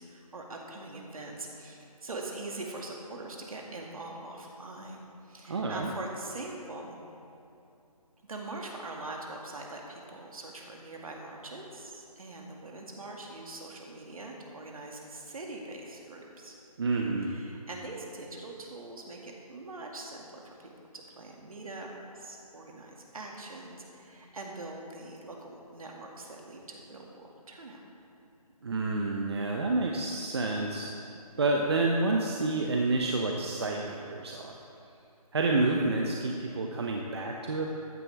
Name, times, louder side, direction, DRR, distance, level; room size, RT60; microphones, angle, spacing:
voice 1, 0.0-7.0 8.2-16.6 17.2-21.9 22.1-27.8, right 2 dB, 65° right, 0 dB, 2.2 m, -43 dB
voice 2, 5.5-5.9 16.8-17.3 28.6-30.9 31.4-34.5 35.3-37.7, right 2 dB, 40° right, 0 dB, 0.8 m, -29 dB
15.0 x 10.5 x 3.5 m, 2.6 s
figure-of-eight pair, 165°, 20 cm